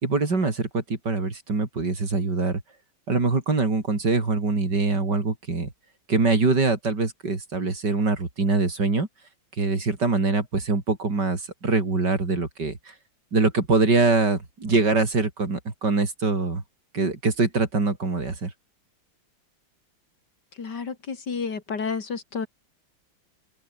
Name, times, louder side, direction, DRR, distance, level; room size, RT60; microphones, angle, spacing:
voice 1, 0.0-2.6 3.1-5.7 6.1-9.1 9.6-12.8 13.3-16.6 16.9-18.5, right 3 dB, 60° right, 4.5 m, -23 dB
voice 2, 20.6-22.5, left 5 dB, 60° left, 2.9 m, -31 dB
omnidirectional pair, 2.1 m